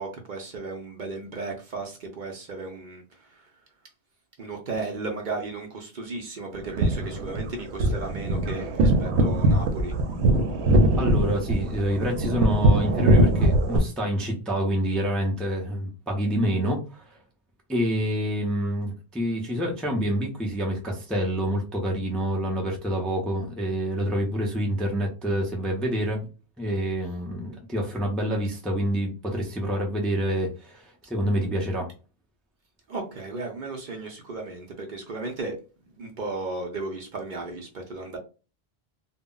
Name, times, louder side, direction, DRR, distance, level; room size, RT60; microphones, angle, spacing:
voice 1, 0.0-3.0 3.3-3.4 4.4-9.9 32.9-35.6 36.0-38.2, right 3 dB, 55° right, 2 dB, 0.6 m, -35 dB
sound 1, 6.6-13.8, right 1 dB, 85° right, 0.8 m, -22 dB
voice 2, 11.0-17.1 17.7-26.3 26.6-31.9, equal, ahead, -1 dB, 0.4 m, -27 dB
2.1 x 2.0 x 3.7 m, 0.33 s
omnidirectional pair, 1.1 m